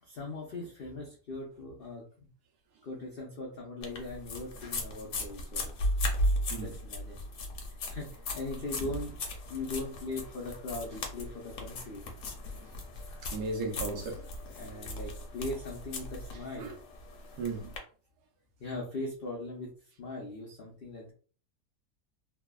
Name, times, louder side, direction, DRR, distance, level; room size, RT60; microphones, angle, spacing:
voice 1, 0.0-2.3 2.8-5.7 6.6-7.2 7.9-9.2 9.5-12.1 14.6-16.7 18.6-19.7 20.0-21.1, left 2 dB, 90° left, 0.5 m, -40 dB
sound 1, 3.8-17.8, left 1 dB, 65° left, 0.9 m, -36 dB
voice 2, 13.2-14.3 14.6-14.7 16.6-16.8 17.4-17.7, right 3 dB, 80° right, 1.2 m, -36 dB
3.1 x 2.0 x 2.2 m
omnidirectional pair, 1.7 m